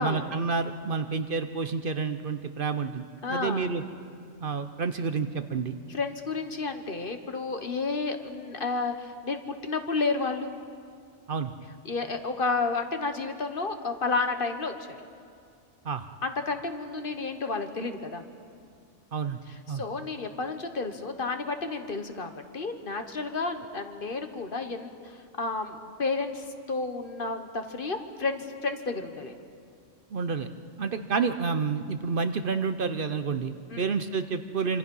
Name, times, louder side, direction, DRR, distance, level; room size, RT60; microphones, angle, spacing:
voice 1, 0.0-3.8 4.4-5.8 11.3-11.5 15.8-16.1 19.1-19.4 19.7-19.8 30.1-30.5 30.8-34.8, right 5 dB, 55° right, 9 dB, 0.9 m, -29 dB
voice 2, 3.2-3.7 5.9-10.5 11.8-15.0 16.2-18.2 19.5-29.4 33.7-33.9, left 3 dB, 50° left, 7 dB, 1.4 m, -31 dB
26.0 x 26.0 x 5.5 m, 2.3 s
omnidirectional pair, 1.2 m